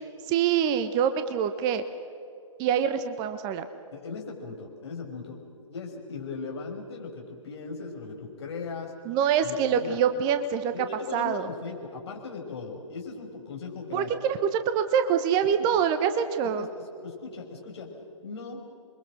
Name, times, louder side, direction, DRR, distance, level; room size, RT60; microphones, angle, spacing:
voice 1, 0.3-1.8 2.6-3.7 9.0-10.7 11.1-11.5 13.9-16.7, right 8 dB, 25° right, 10 dB, 1.1 m, -25 dB
voice 2, 3.9-5.4 5.7-9.0 9.4-10.0 10.7-14.1 15.6-15.7 16.4-17.9 18.2-18.6, left 4 dB, 55° left, 1 dB, 6.2 m, -38 dB
28.0 x 23.5 x 6.4 m, 2.5 s
figure-of-eight pair, 125°, 17 cm